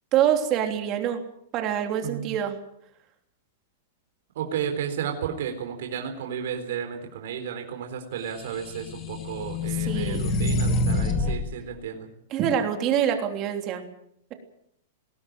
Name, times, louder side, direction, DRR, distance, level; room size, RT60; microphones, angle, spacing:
voice 1, 0.1-1.2 1.5-2.6 9.8-10.3 12.3-13.8, right 9 dB, 30° right, 5 dB, 3.2 m, -25 dB
voice 2, 2.0-2.4 4.3-12.1, right 8 dB, 65° right, 4 dB, 3.9 m, -33 dB
sound 1, 8.5-11.4, left 2 dB, 20° left, 2.7 m, -26 dB
20.5 x 16.5 x 9.2 m, 0.73 s
supercardioid pair, 165°, 0 cm